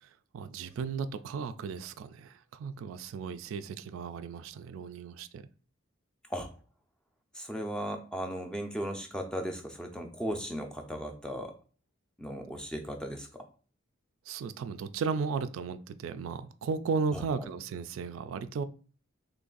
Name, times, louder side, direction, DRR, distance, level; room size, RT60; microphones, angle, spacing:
voice 1, 0.3-5.4 14.3-18.6, right 5 dB, 85° right, 12 dB, 0.3 m, -35 dB
voice 2, 7.3-11.5 12.2-13.4 17.1-17.2, equal, 5° left, 3 dB, 0.4 m, -36 dB
3.1 x 2.5 x 3.8 m, 0.39 s
head